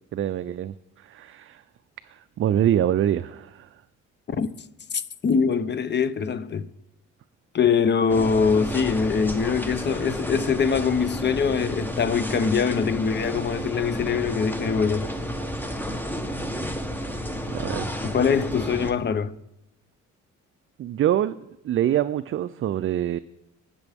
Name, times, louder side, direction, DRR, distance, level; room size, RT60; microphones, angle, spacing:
voice 1, 0.1-1.6 2.1-3.7 17.5-17.9 20.8-21.4 21.6-23.2, right 11 dB, 45° right, 0.4 m, -25 dB
voice 2, 4.9-6.7 7.5-15.1 18.0-19.4, left 6 dB, 35° left, 0.7 m, -23 dB
sound 1, 8.1-18.9, equal, 5° left, 1.0 m, -31 dB
19.0 x 6.9 x 3.5 m
cardioid pair, 90°, 30 cm